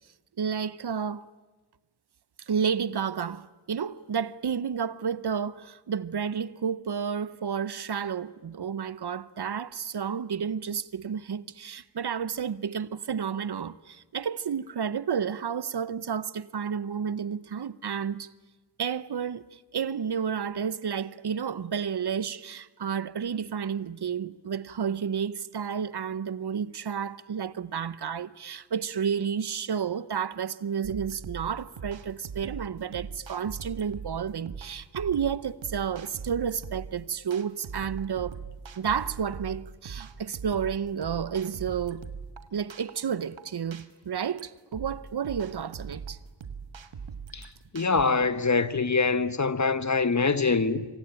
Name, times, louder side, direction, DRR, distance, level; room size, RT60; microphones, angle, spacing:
voice 1, 0.4-1.3 2.5-18.3 18.8-38.4 38.8-42.0 42.5-46.2, right 7 dB, 60° right, 0.8 m, -31 dB
sound 1, 30.8-48.0, right 5 dB, 90° right, 1.5 m, -41 dB
voice 2, 47.7-50.9, left 4 dB, 40° left, 1.2 m, -24 dB
26.0 x 25.5 x 8.9 m
wide cardioid pair, 85°, 44 cm